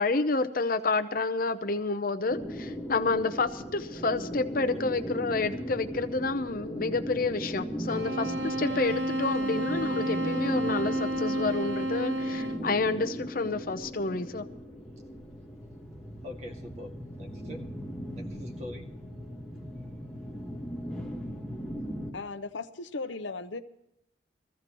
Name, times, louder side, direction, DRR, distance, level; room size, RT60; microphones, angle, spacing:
voice 1, 0.0-14.5, left 3 dB, 45° left, 8 dB, 0.7 m, -29 dB
sound 1, 2.3-22.1, equal, 5° left, 1.6 m, -38 dB
sound 2, 7.9-12.8, right 1 dB, 70° right, 1.1 m, -31 dB
voice 2, 16.2-17.7 18.1-18.9, left 1 dB, 35° right, 2 dB, 2.1 m, -44 dB
voice 3, 22.1-23.6, left 3 dB, 75° left, 10 dB, 0.8 m, -37 dB
22.5 x 15.0 x 3.1 m, 0.81 s
head